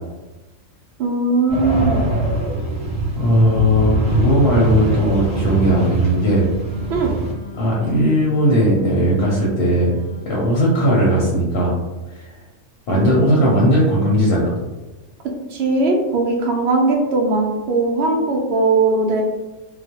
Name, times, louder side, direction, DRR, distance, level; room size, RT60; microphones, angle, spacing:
voice 1, 1.0-2.0 6.9-7.1 15.5-19.2, right 3 dB, 65° right, 1 dB, 0.8 m, -19 dB
sound 1, 1.5-7.3, right 2 dB, 5° right, 0.7 m, -22 dB
voice 2, 3.2-6.5 7.6-9.9 10.2-11.8 12.1-12.3 12.9-14.5, equal, 60° left, -4 dB, 0.7 m, -17 dB
Wind instrument woodwind instrument, 6.5-11.3, left 3 dB, 85° right, 1.0 m, -40 dB
2.3 x 2.0 x 2.8 m, 1.1 s
omnidirectional pair, 1.3 m